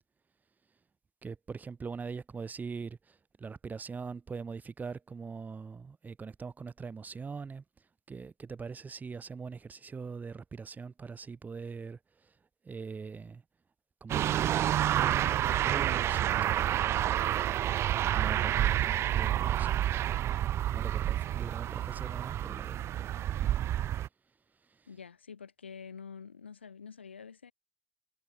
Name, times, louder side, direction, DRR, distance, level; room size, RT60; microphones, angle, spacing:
voice 1, 1.2-7.6 8.1-12.3 12.6-13.4 14.0-16.5 18.1-19.8 20.3-23.1 24.7-24.8, right 5 dB, 30° right, 2.6 m, -42 dB
sound 1, 14.1-24.1, right 12 dB, 50° right, 0.5 m, -29 dB
voice 2, 24.9-27.5, left 6 dB, 85° left, 4.3 m, -47 dB
figure-of-eight pair, 55°, 6 cm